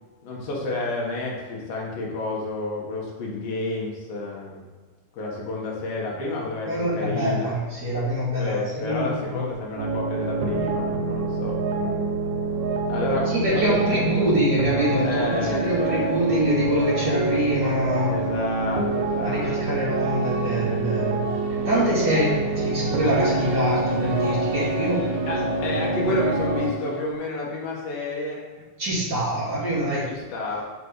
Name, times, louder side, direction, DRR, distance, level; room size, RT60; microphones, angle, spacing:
voice 1, 0.2-4.6 5.1-7.5 8.4-12.1 12.9-14.3 15.0-16.1 18.1-19.8 22.2-22.3 25.3-28.4 30.0-30.6, left 2 dB, 70° left, -3 dB, 3.1 m, -30 dB
voice 2, 6.6-9.4 13.3-18.1 19.2-21.2 21.6-25.1 25.3-25.4 26.0-26.1 28.8-30.1, equal, 35° right, -8 dB, 2.3 m, -25 dB
sound 1, 9.8-26.7, right 3 dB, 85° right, 2.8 m, -27 dB
sound 2, 14.7-27.0, equal, 60° right, 2.4 m, -32 dB
7.8 x 5.9 x 3.2 m, 1.4 s
omnidirectional pair, 4.3 m